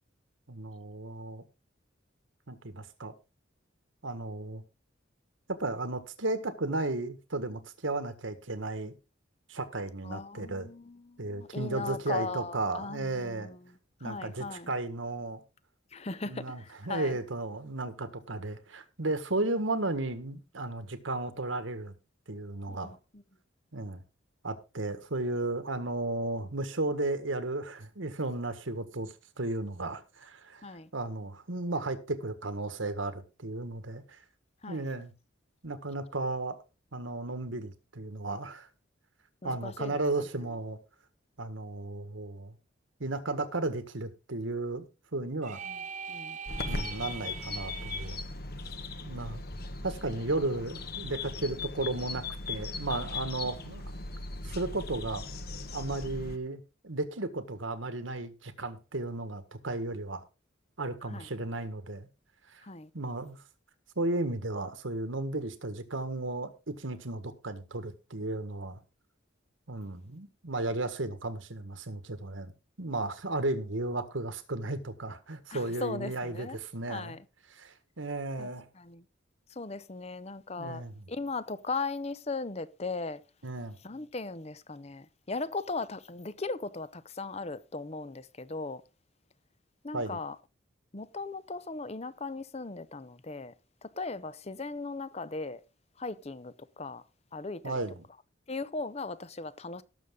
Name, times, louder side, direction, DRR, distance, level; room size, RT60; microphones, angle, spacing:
voice 1, 0.5-1.4 2.5-3.1 4.0-4.6 5.5-8.9 9.5-10.7 11.2-13.5 14.0-15.4 16.2-21.9 22.3-23.0 23.7-24.0 24.4-34.2 34.7-35.1 35.6-36.6 36.9-38.7 39.4-40.8 41.4-42.5 43.0-44.9 45.1-45.6 46.6-48.2 49.0-49.4 49.8-53.8 54.4-55.2 55.7-60.2 60.8-62.1 62.5-62.6 62.9-63.4 63.9-68.8 69.7-72.5 72.8-77.1 77.5-78.7 80.6-80.9 83.4-83.8 89.9-90.2 97.6-98.0, right 2 dB, 80° right, 1.6 m, -34 dB
voice 2, 10.0-14.7 15.9-17.2 22.7-23.2 30.6-30.9 34.6-34.9 39.4-40.5 45.6-45.8 46.1-46.8 53.4-53.6 61.0-61.3 62.6-62.9 75.5-76.6 76.9-77.2 78.4-78.5 78.7-79.0 79.5-83.2 83.8-88.8 89.8-90.4 90.9-93.5 93.8-95.6 96.0-97.0 97.3-97.8 98.5-99.8, left 3 dB, 30° left, 0.7 m, -38 dB
sound 1, 45.4-48.2, right 7 dB, 40° right, 1.2 m, -41 dB
sound 2, 46.5-56.4, left 3 dB, 50° left, 1.3 m, -38 dB
18.0 x 7.0 x 3.8 m
head